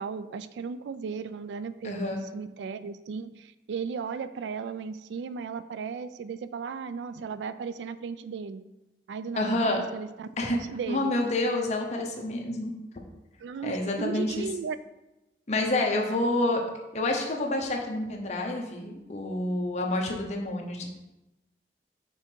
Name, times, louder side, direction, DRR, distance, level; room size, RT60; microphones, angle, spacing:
voice 1, 0.0-8.6 9.1-11.1 13.4-14.8, right 5 dB, 85° right, 13 dB, 0.3 m, -36 dB
voice 2, 1.8-2.2 9.4-9.8 10.4-10.6 10.9-12.7 13.6-14.5 15.5-16.6 16.9-20.9, left 2 dB, 40° left, 1 dB, 0.8 m, -28 dB
5.7 x 3.8 x 4.5 m, 1.0 s
head